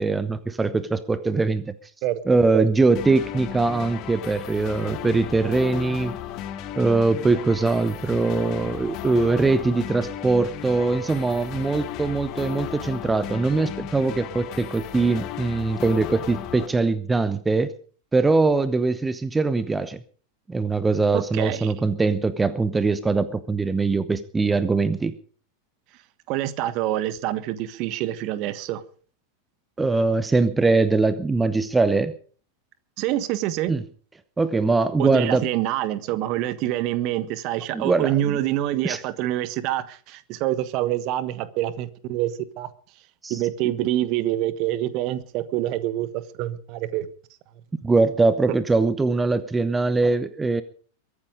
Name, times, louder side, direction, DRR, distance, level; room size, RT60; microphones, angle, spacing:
voice 1, 0.0-1.8 2.3-6.1 6.8-17.7 18.1-20.0 20.5-25.1 29.8-32.1 33.7-33.8 34.4-35.5 37.7-38.4 38.8-39.0 43.2-43.4 47.8-50.6, right 3 dB, 10° right, 15 dB, 0.9 m, -22 dB
sound 1, 2.9-16.7, left 11 dB, 40° left, 1.8 m, -35 dB
voice 2, 21.1-21.7 26.3-28.8 33.0-33.7 35.0-42.7 43.3-47.1, right 13 dB, 40° right, 16 dB, 1.3 m, -26 dB
23.0 x 9.9 x 5.2 m, 0.43 s
figure-of-eight pair, 90°, 0 cm